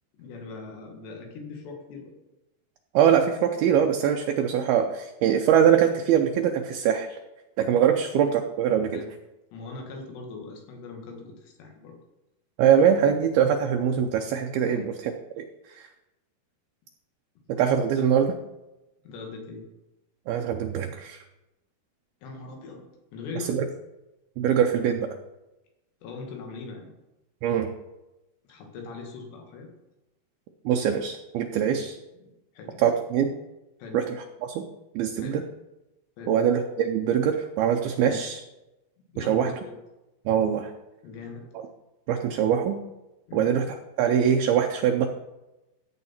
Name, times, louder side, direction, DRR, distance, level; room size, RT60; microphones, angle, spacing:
voice 1, 0.1-2.1 8.9-9.1 9.5-12.0 14.6-14.9 18.0-18.1 19.0-19.7 22.2-23.6 26.0-26.9 28.5-29.7 31.8-31.9 32.2-32.9 33.8-34.0 35.2-35.4 36.2-36.4 38.0-38.2 39.1-39.8 40.3-40.4 41.0-41.5 43.3-43.5, left 4 dB, 85° left, 2 dB, 4.0 m, -40 dB
voice 2, 2.9-7.2 7.6-9.0 12.6-14.9 15.4-15.5 15.8-15.9 17.5-18.3 20.3-21.2 23.5-23.6 24.4-25.1 27.4-27.7 30.7-31.9 32.8-33.3 33.9-34.0 34.4-34.7 35.0-35.4 36.3-38.4 39.2-39.5 40.3-40.7 42.1-42.8 43.3-43.7 44.0-45.1, right 8 dB, 80° right, 4 dB, 2.4 m, -23 dB
15.0 x 7.3 x 4.4 m, 1.0 s
omnidirectional pair, 4.8 m